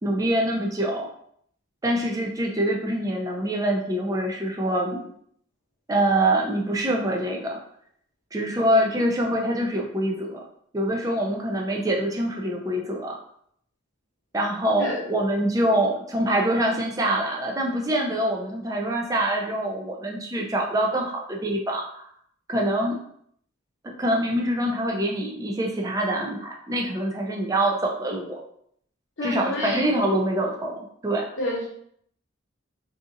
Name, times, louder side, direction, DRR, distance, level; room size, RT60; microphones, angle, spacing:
voice 1, 0.0-1.1 1.8-5.1 5.9-7.6 8.3-10.4 10.7-13.2 14.3-22.0 22.5-23.0 23.8-28.4 29.2-30.8 31.0-31.3, right 1 dB, 15° right, 0 dB, 0.4 m, -25 dB
voice 2, 29.2-29.9 31.4-31.7, left 1 dB, 65° left, -5 dB, 0.9 m, -29 dB
3.6 x 2.8 x 2.5 m, 0.67 s
head